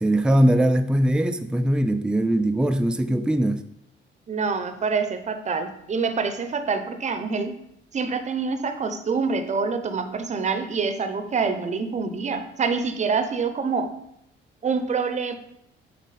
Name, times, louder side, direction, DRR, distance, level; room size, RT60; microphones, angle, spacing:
voice 1, 0.0-3.6, right 1 dB, 5° right, 0.4 m, -21 dB
voice 2, 4.3-7.5 7.9-13.9 14.6-15.3, right 5 dB, 35° right, 0.8 m, -26 dB
7.5 x 4.1 x 4.2 m
cardioid pair, 90°, 20 cm